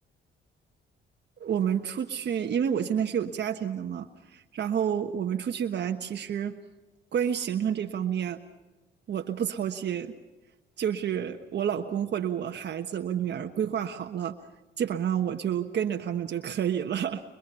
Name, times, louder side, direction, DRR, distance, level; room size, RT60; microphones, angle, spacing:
voice 1, 1.4-6.6 7.1-8.4 9.1-10.1 10.8-14.3 14.8-17.2, right 8 dB, 60° right, 5 dB, 1.4 m, -29 dB
27.5 x 23.5 x 5.7 m, 1.1 s
cardioid pair, 90°, 20 cm